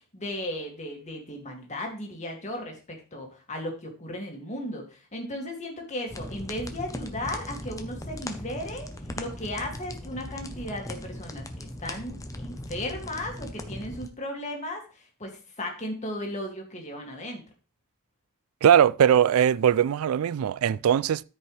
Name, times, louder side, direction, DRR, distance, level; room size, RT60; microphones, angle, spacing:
voice 1, 0.1-8.9 9.2-11.5 11.8-17.4, left 1 dB, 35° left, 2.2 m, -35 dB
sound 1, 6.1-14.1, left 1 dB, 15° left, 0.7 m, -38 dB
voice 2, 18.6-21.2, right 9 dB, 75° right, 0.3 m, -20 dB
13.0 x 5.3 x 3.3 m
head